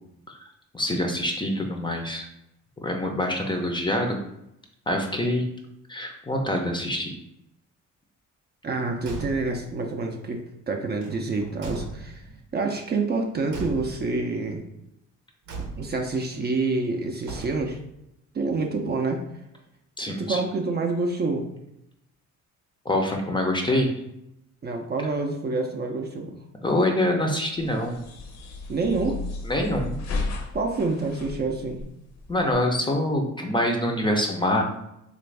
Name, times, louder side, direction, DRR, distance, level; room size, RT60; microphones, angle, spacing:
voice 1, 0.7-2.3 2.8-4.2 4.9-5.5 5.9-7.1 20.0-20.4 22.8-23.9 26.6-28.0 29.4-30.0 32.3-34.6, left 1 dB, 15° left, 2 dB, 0.5 m, -25 dB
voice 2, 8.6-10.4 10.7-12.2 12.5-14.6 15.8-17.8 18.3-19.2 20.1-21.5 24.6-26.4 28.7-29.2 30.5-31.8, right 3 dB, 35° right, 3 dB, 0.5 m, -27 dB
Car / Truck / Slam, 9.0-9.7 11.0-12.4 13.5-14.3 15.5-16.1 17.2-17.9, right 3 dB, 70° right, 0.7 m, -37 dB
sound 1, 27.6-32.5, left 3 dB, 60° left, 0.7 m, -34 dB
3.4 x 2.5 x 3.2 m, 0.83 s
cardioid pair, 90°, 30 cm